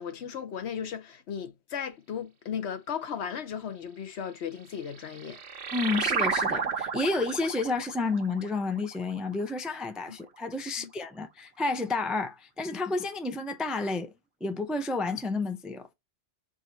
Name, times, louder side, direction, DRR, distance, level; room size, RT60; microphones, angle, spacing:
voice 1, 0.0-5.4 10.1-10.2 10.8-10.9, left 7 dB, 70° left, 1.0 m, -36 dB
sound 1, 4.7-9.8, right 5 dB, 65° right, 1.2 m, -32 dB
voice 2, 5.7-14.1 14.4-15.9, left 3 dB, ahead, 0.4 m, -30 dB
4.7 x 2.7 x 4.1 m
omnidirectional pair, 1.2 m